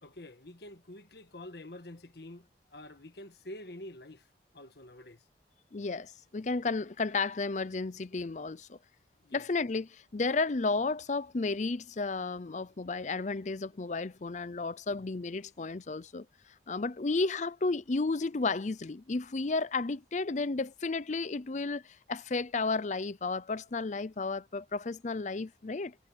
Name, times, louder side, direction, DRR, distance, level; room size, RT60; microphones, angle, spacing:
voice 1, 0.0-4.3 4.5-5.3 9.2-9.5, left 1 dB, 65° left, 1.5 m, -47 dB
voice 2, 5.7-8.8 9.3-16.3 16.7-25.9, left 3 dB, 45° left, 0.6 m, -33 dB
head